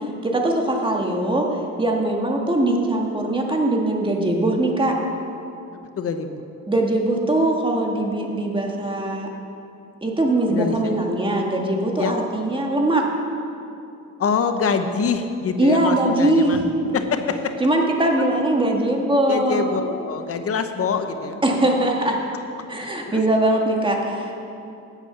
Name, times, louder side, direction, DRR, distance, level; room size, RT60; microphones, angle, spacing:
voice 1, 0.0-5.0 6.7-9.3 10.0-13.1 15.6-17.0 17.6-19.7 21.4-22.2 22.7-24.3, right 1 dB, 15° right, 1 dB, 1.7 m, -21 dB
voice 2, 6.0-6.4 10.5-11.0 12.0-12.1 14.2-16.6 16.9-17.5 19.3-21.4 22.8-23.2, left 5 dB, 50° left, 8 dB, 0.9 m, -25 dB
9.1 x 8.3 x 6.9 m, 2.7 s
cardioid pair, 90°, 30 cm